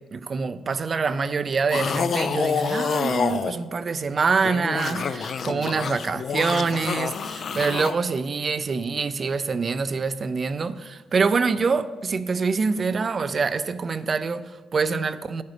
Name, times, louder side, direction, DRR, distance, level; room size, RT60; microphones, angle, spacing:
voice 1, 0.1-15.4, right 4 dB, 40° right, 0.4 m, -25 dB
sound 1, 1.7-3.5 4.3-8.0, left 6 dB, 50° left, 0.4 m, -27 dB
9.4 x 8.2 x 3.4 m
cardioid pair, 90°, 0 cm